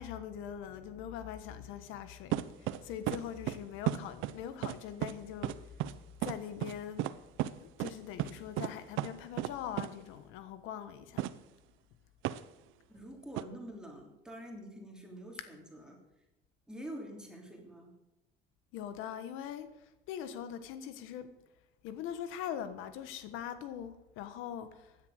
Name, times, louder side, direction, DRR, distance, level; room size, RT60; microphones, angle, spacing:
voice 1, 0.0-5.8 6.2-7.1 7.6-11.2 18.7-21.3 21.8-25.0, left 9 dB, 85° left, 1.4 m, -42 dB
sound 1, 2.3-2.8 3.1-3.2 3.5-3.6 3.9-4.4 4.6-4.7 5.0-5.1 5.4-5.5 5.8-5.9 6.2-6.3 6.6-6.7 7.0-7.1 7.4-7.5 7.8-7.9 8.2-8.3 8.6-8.7 9.0-9.1 9.4-9.5 9.8-9.9 11.2-11.3 12.2-12.4 13.4-13.5, right 14 dB, 75° right, 0.8 m, -33 dB
voice 2, 12.9-16.0 16.7-17.9, right 1 dB, 5° right, 3.1 m, -46 dB
16.0 x 10.5 x 6.6 m
cardioid pair, 155°, 20 cm